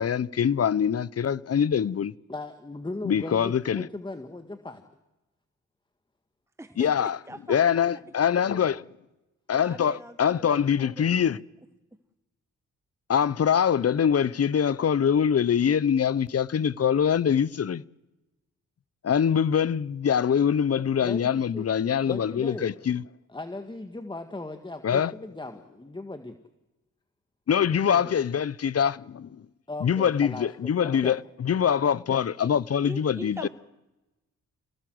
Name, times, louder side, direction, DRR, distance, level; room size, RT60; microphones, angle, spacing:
voice 1, 0.0-2.1 3.0-3.9 6.8-7.2 7.5-8.8 9.5-11.4 13.1-17.8 19.0-23.0 24.8-25.1 27.5-29.3 29.8-33.5, left 8 dB, 50° left, 0.8 m, -24 dB
voice 2, 2.3-4.8 8.4-8.8 20.7-21.6 22.0-22.7 23.3-26.4 27.7-28.1 29.7-31.1, left 2 dB, 15° left, 1.8 m, -38 dB
voice 3, 6.6-8.0 9.5-11.2 32.4-32.5 32.8-33.5, right 1 dB, 10° right, 1.3 m, -42 dB
27.0 x 18.0 x 7.9 m
cardioid pair, 80°, 32 cm